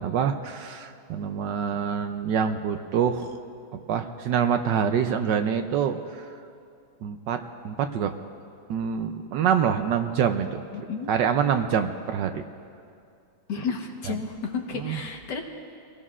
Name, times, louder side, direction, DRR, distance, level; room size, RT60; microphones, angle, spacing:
voice 1, 0.0-3.3 3.7-6.3 7.0-7.4 7.6-8.1 8.7-10.6 11.1-12.4 14.1-14.2 14.8-15.0, right 7 dB, 70° right, 7 dB, 1.1 m, -26 dB
voice 2, 13.5-15.4, left 5 dB, 60° left, 2 dB, 1.8 m, -32 dB
25.0 x 18.0 x 2.5 m, 2.4 s
omnidirectional pair, 2.3 m